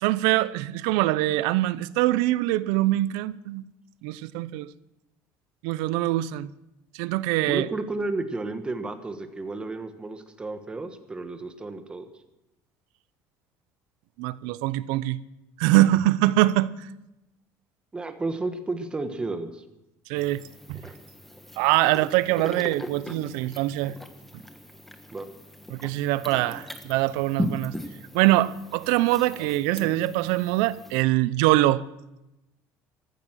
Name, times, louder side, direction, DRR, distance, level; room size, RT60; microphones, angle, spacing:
voice 1, 0.0-3.6 4.0-4.7 5.6-6.5 6.9-7.7 14.2-15.2 15.6-16.7 20.1-20.4 20.7-20.8 21.6-23.9 25.7-27.7 28.1-31.8, right 16 dB, 90° right, 0.6 m, -23 dB
voice 2, 7.5-12.1 17.9-19.6 25.1-25.3, right 3 dB, 15° right, 1.4 m, -32 dB
sound 1, 20.2-31.0, left 1 dB, 5° left, 1.2 m, -38 dB
15.0 x 13.5 x 6.3 m
cardioid pair, 145°, 7 cm